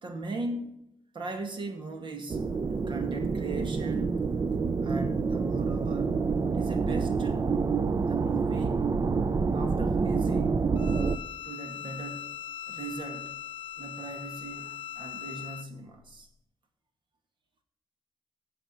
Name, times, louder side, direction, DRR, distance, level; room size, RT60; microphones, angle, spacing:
voice 1, 0.0-0.7 1.1-2.4 2.7-4.2 4.8-6.3 6.5-7.5 8.1-8.8 9.5-10.6 11.4-12.3 12.7-13.4 13.8-16.3, right 2 dB, 70° right, 5 dB, 2.0 m, -39 dB
sound 1, 2.3-11.2, right 4 dB, 45° right, 0.6 m, -27 dB
Bowed string instrument, 10.8-15.7, left 10 dB, 85° left, 0.5 m, -40 dB
8.6 x 6.5 x 7.9 m, 0.80 s
cardioid pair, 75°, 9 cm